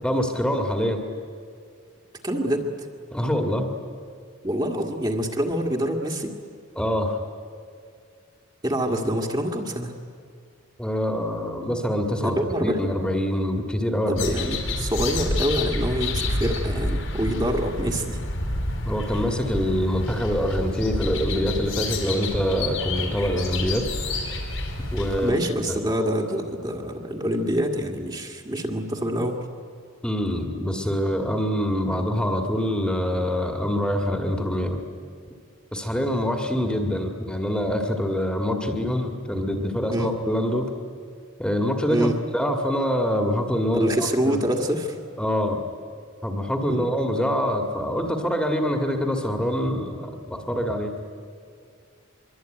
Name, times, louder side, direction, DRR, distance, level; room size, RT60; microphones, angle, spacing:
voice 1, 0.0-1.1 3.1-3.6 6.8-7.2 10.8-12.4 12.6-14.3 18.9-23.9 24.9-25.4 25.7-25.8 30.0-34.8 35.7-40.7 41.4-44.4 45.2-45.6 46.2-50.9, equal, 5° left, 3 dB, 1.9 m, -25 dB
voice 2, 2.2-2.7 4.4-6.3 8.6-9.9 12.2-13.0 14.1-18.2 25.2-29.4 39.9-40.1 41.9-42.2 43.7-45.0 46.7-46.8, equal, 20° right, 1 dB, 1.9 m, -26 dB
sound 1, 14.2-25.3, left 2 dB, 75° left, 4.9 m, -29 dB
24.5 x 23.5 x 9.2 m, 2.3 s
head